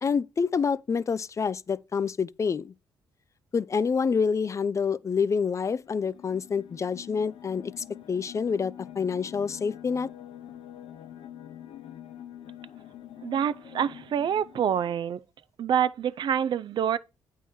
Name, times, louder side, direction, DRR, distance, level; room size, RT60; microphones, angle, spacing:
voice 1, 0.0-2.7 3.5-10.1, left 5 dB, 35° left, 0.3 m, -27 dB
sound 1, 5.8-15.0, left 11 dB, 80° left, 0.6 m, -46 dB
voice 2, 13.2-15.2 15.6-17.0, right 8 dB, 60° right, 0.4 m, -26 dB
8.2 x 3.7 x 4.2 m
supercardioid pair, 60°, 9 cm